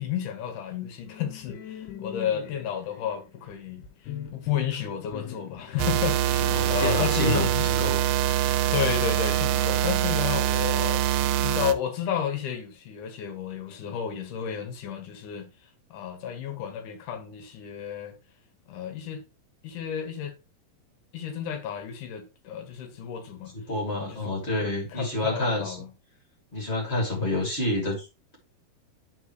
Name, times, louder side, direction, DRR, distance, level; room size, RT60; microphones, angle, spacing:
voice 1, 0.0-3.9 4.3-7.6 8.7-11.0 11.4-15.5 15.9-18.2 18.7-19.2 19.6-20.3 21.1-23.5 24.0-24.4 24.6-25.9, left 8 dB, 65° left, 2.4 m, -32 dB
sound 1, 1.1-7.9, left 9 dB, 85° left, 2.9 m, -40 dB
sound 2, 5.8-11.7, right 12 dB, 85° right, 2.6 m, -24 dB
voice 2, 6.5-8.0 23.5-25.8 26.5-28.1, left 1 dB, 20° left, 1.8 m, -28 dB
11.0 x 4.6 x 3.1 m
omnidirectional pair, 4.4 m